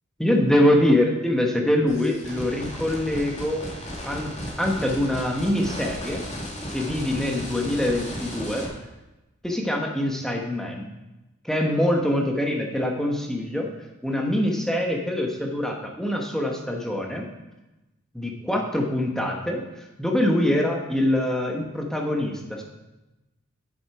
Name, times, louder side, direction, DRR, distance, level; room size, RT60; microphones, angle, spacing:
voice 1, 0.2-3.6 4.0-6.3 6.7-8.7 9.4-10.9 11.4-13.7 14.0-17.3 18.1-19.6 20.0-22.6, left 1 dB, ahead, 0 dB, 1.1 m, -24 dB
sound 1, 1.9-8.7, equal, 35° left, 2.0 m, -35 dB
8.0 x 7.2 x 4.8 m, 1.0 s
head